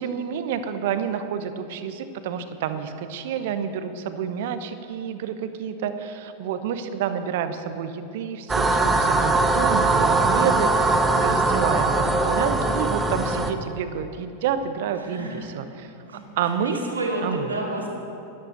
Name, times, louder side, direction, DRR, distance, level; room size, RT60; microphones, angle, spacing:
voice 1, 0.0-15.9 16.4-16.8 17.2-17.5, right 7 dB, 55° right, 10 dB, 0.9 m, -29 dB
sound 1, 8.5-13.5, right 3 dB, 15° right, 0.9 m, -21 dB
voice 2, 15.0-15.5 16.0-17.9, right 2 dB, 75° right, -1 dB, 2.7 m, -30 dB
12.5 x 12.0 x 6.7 m, 2.7 s
figure-of-eight pair, 90°, 0 cm